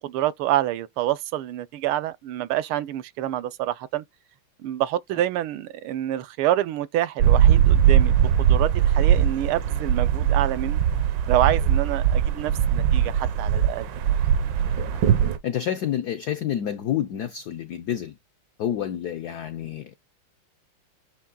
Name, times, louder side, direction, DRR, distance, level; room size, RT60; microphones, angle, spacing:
voice 1, 0.0-4.0 4.6-10.8 11.3-13.9, right 13 dB, 80° right, 1.6 m, -27 dB
sound 1, 7.2-15.4, right 9 dB, 65° right, 1.3 m, -20 dB
voice 2, 15.4-18.1 18.6-19.9, left 10 dB, 70° left, 0.9 m, -28 dB
8.5 x 3.1 x 3.7 m
omnidirectional pair, 2.4 m